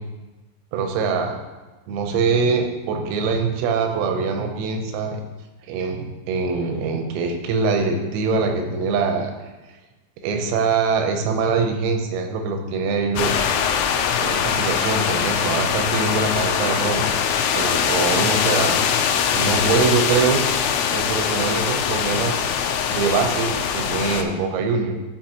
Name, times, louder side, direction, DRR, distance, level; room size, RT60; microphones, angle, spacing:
voice 1, 0.7-1.4 1.9-5.2 5.6-9.3 10.2-13.4 14.2-17.0 17.5-18.8 19.3-20.5 20.9-22.4 22.9-24.9, right 4 dB, 85° right, 4 dB, 3.6 m, -23 dB
sound 1, 13.2-24.2, left 7 dB, 80° left, 3.2 m, -22 dB
11.5 x 5.9 x 3.0 m, 1.2 s
omnidirectional pair, 5.9 m